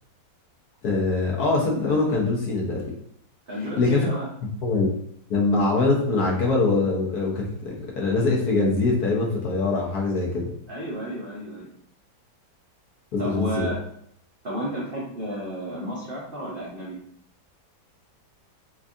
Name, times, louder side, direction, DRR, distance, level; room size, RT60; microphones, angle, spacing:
voice 1, 0.8-2.9 3.7-4.1 4.4-4.9 5.3-10.5 13.1-13.7, left 3 dB, 65° left, -2 dB, 1.1 m, -23 dB
voice 2, 3.5-4.3 10.7-11.7 13.2-13.8 14.4-17.0, equal, 85° right, -5 dB, 0.4 m, -32 dB
4.4 x 2.4 x 2.6 m, 0.69 s
omnidirectional pair, 2.1 m